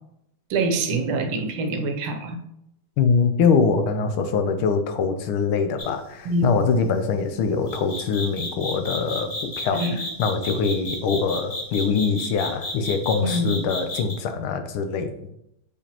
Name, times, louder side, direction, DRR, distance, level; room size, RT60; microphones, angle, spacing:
voice 1, 0.5-2.4 6.2-6.6 9.7-10.0 13.2-13.6, right 2 dB, 80° right, 5 dB, 1.6 m, -25 dB
voice 2, 3.0-9.8 10.2-15.1, left 5 dB, 80° left, 8 dB, 1.5 m, -23 dB
sound 1, 5.8-6.0 7.7-14.2, left 1 dB, 20° left, 1.2 m, -31 dB
6.7 x 5.0 x 2.9 m, 0.81 s
omnidirectional pair, 2.3 m